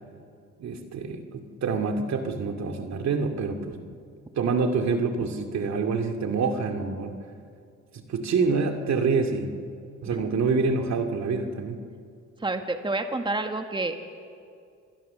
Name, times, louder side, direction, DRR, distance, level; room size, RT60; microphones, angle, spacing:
voice 1, 0.6-3.8 4.4-7.2 7.9-9.5 10.0-11.8, right 4 dB, 65° right, 5 dB, 2.4 m, -26 dB
voice 2, 12.4-14.1, right 2 dB, 15° right, 6 dB, 1.6 m, -29 dB
27.0 x 21.0 x 6.9 m, 2.4 s
cardioid pair, 90°, 30 cm